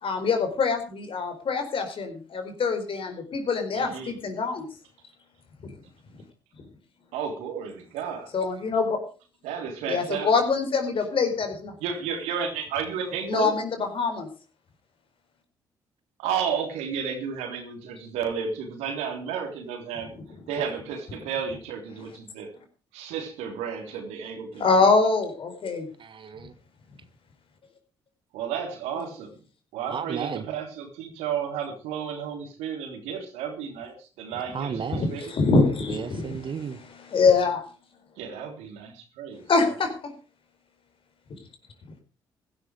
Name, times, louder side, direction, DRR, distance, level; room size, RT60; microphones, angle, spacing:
voice 1, 0.0-4.7 5.6-5.7 8.3-9.0 9.9-11.7 13.3-14.3 24.6-25.9 34.9-37.6 39.5-39.9, left 4 dB, 55° left, 4.7 m, -24 dB
voice 2, 3.7-4.1 7.1-8.3 9.4-10.3 11.8-13.6 16.2-20.1 20.5-22.5 22.9-24.9 28.3-29.3 29.7-35.3 38.2-39.8, right 7 dB, 75° right, 3.4 m, -32 dB
voice 3, 26.0-26.5 29.9-30.4 34.5-35.1 35.9-36.8, right 6 dB, 50° right, 1.4 m, -33 dB
16.0 x 12.0 x 4.9 m
hypercardioid pair, 45°, 11 cm